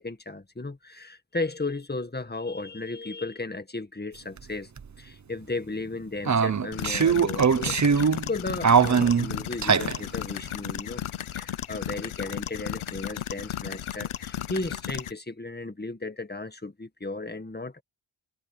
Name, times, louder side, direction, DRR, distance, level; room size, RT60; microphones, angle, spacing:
voice 1, 0.0-4.7 5.0-11.0 11.3-17.8, left 2 dB, 20° left, 1.9 m, -35 dB
sound 1, 4.4-4.5 4.8-4.9 6.3-8.3 8.6-10.0, right 6 dB, 35° right, 0.8 m, -21 dB
sound 2, 6.7-15.1, left 11 dB, 80° left, 0.8 m, -35 dB
wide cardioid pair, 70°, 48 cm